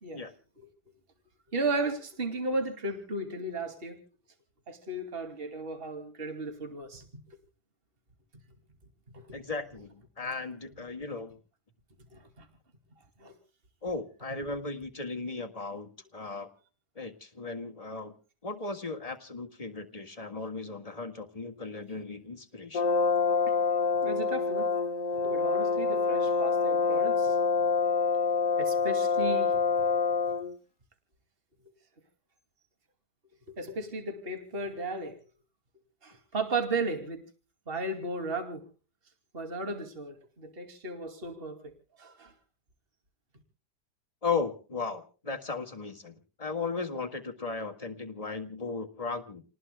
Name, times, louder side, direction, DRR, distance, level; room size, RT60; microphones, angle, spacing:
voice 1, 1.5-4.0 4.7-7.2 9.1-9.4 12.1-12.5 13.2-13.4 23.5-23.6 24.0-24.7 25.1-27.4 28.6-29.6 33.5-35.2 36.0-37.2 37.7-38.6 39.3-41.7 42.0-42.3, right 2 dB, 35° right, 7 dB, 2.7 m, -35 dB
voice 2, 9.3-11.4 13.8-16.5 17.0-18.1 18.4-22.8 44.2-49.4, left 4 dB, 20° left, 5 dB, 1.8 m, -36 dB
Brass instrument, 22.7-30.5, left 5 dB, 50° left, 1.8 m, -26 dB
29.5 x 19.0 x 2.2 m, 0.37 s
omnidirectional pair, 1.8 m